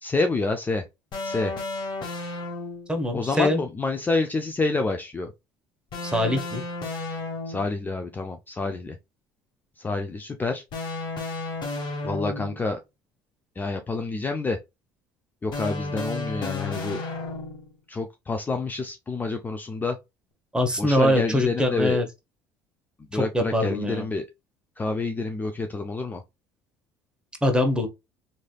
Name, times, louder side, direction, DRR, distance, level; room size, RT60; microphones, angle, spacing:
voice 1, 0.0-0.9 1.2-1.5 3.1-5.3 7.5-9.0 9.8-10.6 12.0-12.8 13.6-14.6 15.4-17.0 17.9-20.0 20.8-22.0 23.1-24.3 24.8-26.2, left 3 dB, 20° left, 0.4 m, -28 dB
sound 1, 1.1-2.9 5.9-7.8 10.7-12.7 15.5-17.7, left 3 dB, 50° left, 1.3 m, -33 dB
voice 2, 2.9-3.6 6.0-6.6 20.5-22.0 23.1-24.1 27.4-27.9, left 1 dB, 10° right, 1.0 m, -23 dB
3.2 x 2.7 x 2.3 m
supercardioid pair, 80°, 9 cm